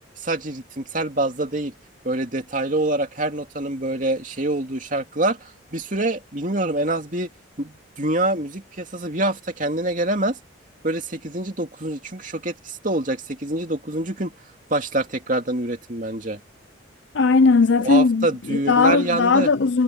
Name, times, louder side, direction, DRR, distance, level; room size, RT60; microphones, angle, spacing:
voice 1, 0.2-1.7 2.0-7.3 7.6-10.4 10.8-14.3 14.7-16.4 17.8-19.5, right 2 dB, 40° right, 2.8 m, -25 dB
voice 2, 17.1-19.8, left 4 dB, 65° left, 0.6 m, -18 dB
head